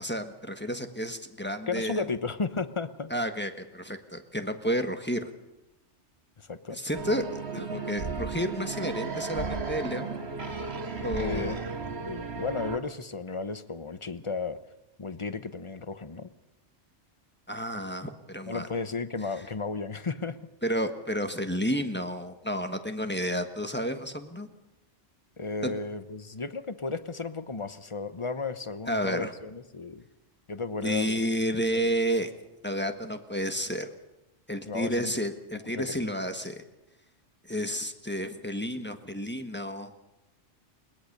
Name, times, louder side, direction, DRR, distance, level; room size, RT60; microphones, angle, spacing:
voice 1, 0.0-2.1 3.1-5.3 6.7-10.2 11.0-11.6 17.5-18.7 20.6-24.5 25.6-25.7 28.9-29.3 30.8-32.3 32.6-33.9 34.5-36.6 37.4-39.9, equal, 10° left, 7 dB, 1.3 m, -31 dB
voice 2, 1.7-3.1 6.4-6.8 11.2-14.6 15.0-16.3 18.5-20.4 25.4-30.0 30.5-31.2 31.7-31.8 34.6-35.1 35.5-36.0, left 4 dB, 30° left, 12 dB, 0.9 m, -34 dB
sound 1, 6.9-12.8, right 4 dB, 60° right, 2.2 m, -34 dB
22.0 x 19.0 x 6.7 m, 0.96 s
omnidirectional pair, 1.2 m